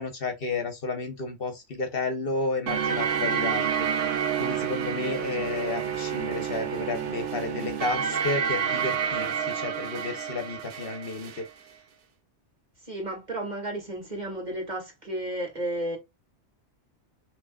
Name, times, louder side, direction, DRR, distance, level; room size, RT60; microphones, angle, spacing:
voice 1, 0.0-11.5, left 3 dB, 55° left, 1.1 m, -32 dB
sound 1, 2.7-11.4, right 7 dB, 75° right, 1.1 m, -29 dB
voice 2, 12.8-16.0, right 1 dB, 35° right, 2.1 m, -33 dB
5.9 x 3.2 x 2.3 m
omnidirectional pair, 1.2 m